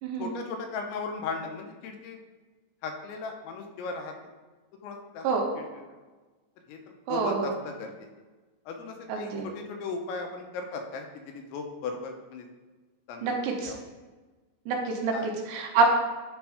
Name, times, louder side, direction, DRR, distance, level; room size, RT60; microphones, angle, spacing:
voice 1, 0.2-2.2 2.8-4.1 4.8-5.3 5.6-5.8 6.7-6.8 7.1-8.1 8.7-12.5 13.1-13.8 15.1-15.3, left 4 dB, 85° left, 3 dB, 3.1 m, -37 dB
voice 2, 7.1-7.5 9.1-9.4 13.2-13.7 14.7-15.1 15.5-15.9, right 4 dB, 80° right, 1 dB, 3.1 m, -26 dB
9.6 x 3.6 x 4.9 m, 1.3 s
omnidirectional pair, 5.3 m